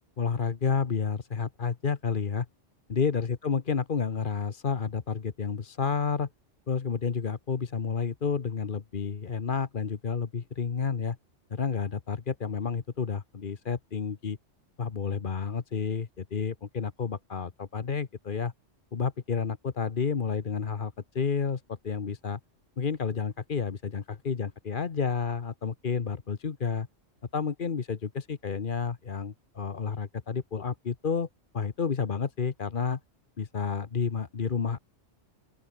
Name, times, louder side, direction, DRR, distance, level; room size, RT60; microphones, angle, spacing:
voice 1, 0.2-2.5 2.9-6.3 6.7-11.2 11.5-14.4 14.8-18.5 18.9-22.4 22.8-26.9 27.3-31.3 31.5-33.0 33.4-34.8, left 6 dB, 45° left, 1.2 m, -30 dB
open air
omnidirectional pair, 1.2 m